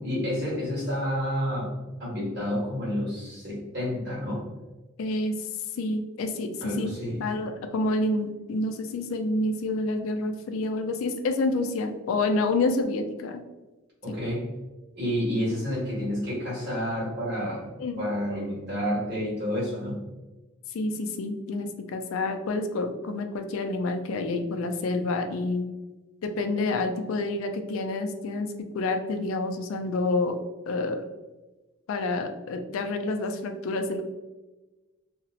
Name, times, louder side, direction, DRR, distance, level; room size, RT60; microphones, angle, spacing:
voice 1, 0.0-1.7 2.0-4.4 6.6-7.2 14.0-14.5 14.9-17.7 18.0-20.0, equal, 50° right, -7 dB, 1.5 m, -29 dB
voice 2, 5.0-5.4 5.8-6.9 7.2-13.4 14.1-14.2 17.8-18.0 20.7-25.6 26.2-30.4 30.7-31.0 31.9-34.0, left 2 dB, 70° left, 7 dB, 0.3 m, -28 dB
2.8 x 2.0 x 2.8 m, 1.1 s
head